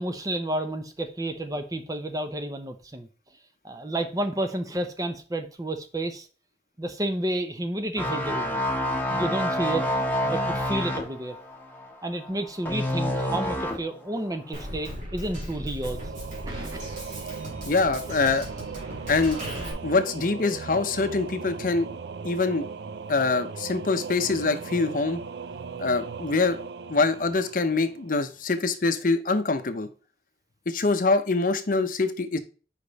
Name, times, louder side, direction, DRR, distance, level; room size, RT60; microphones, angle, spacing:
voice 1, 0.0-3.1 3.6-6.3 6.8-8.6 9.1-9.9 10.2-11.4 12.0-16.0 16.5-16.8, right 1 dB, 20° right, 8 dB, 0.7 m, -31 dB
sound 1, 8.0-14.0 14.3-14.6, left 1 dB, 10° left, 1.1 m, -28 dB
Drum kit, 14.5-19.7, equal, 45° right, 2.5 m, -37 dB
Singing / Musical instrument, 15.8-28.4, right 5 dB, 70° right, 0.4 m, -38 dB
voice 2, 17.7-18.5 19.1-19.4 19.8-21.9 22.2-22.7 23.1-25.2 25.8-26.6 26.9-29.9 30.7-32.4, left 3 dB, 50° left, 9 dB, 0.7 m, -24 dB
5.2 x 5.0 x 4.0 m, 0.37 s
head